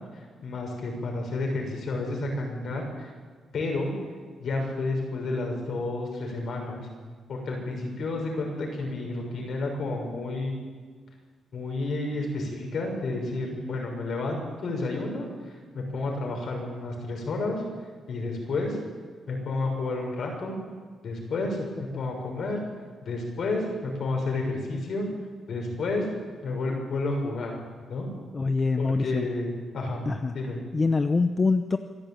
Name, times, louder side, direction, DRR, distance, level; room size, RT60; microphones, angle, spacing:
voice 1, 0.1-3.1 3.5-3.9 4.4-6.9 7.3-10.5 11.5-17.6 18.1-18.8 19.3-20.6 21.0-21.6 21.9-22.6 23.0-25.1 25.5-26.1 26.4-27.5 27.9-28.1 28.8-30.1 30.3-30.6, left 2 dB, 65° left, 1 dB, 6.6 m, -31 dB
voice 2, 28.3-29.3 30.1-30.3 30.7-31.8, left 3 dB, 30° left, 9 dB, 0.8 m, -24 dB
25.0 x 11.5 x 9.0 m, 1.5 s
cardioid pair, 90°, 0 cm